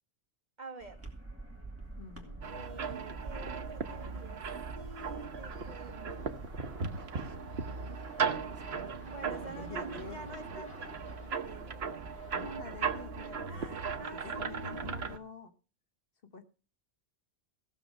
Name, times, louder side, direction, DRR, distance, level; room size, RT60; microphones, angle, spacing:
voice 1, 0.6-1.1 2.5-4.4 4.7-6.4 9.1-10.9 11.2-12.0 13.5-15.1, right 2 dB, 40° right, 3 dB, 2.2 m, -48 dB
sound 1, 0.8-14.9, right 2 dB, 10° right, 2.7 m, -49 dB
voice 2, 2.0-2.4 3.1-3.2 9.3-10.3 10.5-10.7 12.3-15.5 16.3-16.5, left 4 dB, 55° left, 6 dB, 1.5 m, -48 dB
sound 2, 2.4-15.2, right 5 dB, 65° right, 1.3 m, -37 dB
16.0 x 6.9 x 6.3 m, 0.35 s
omnidirectional pair, 1.2 m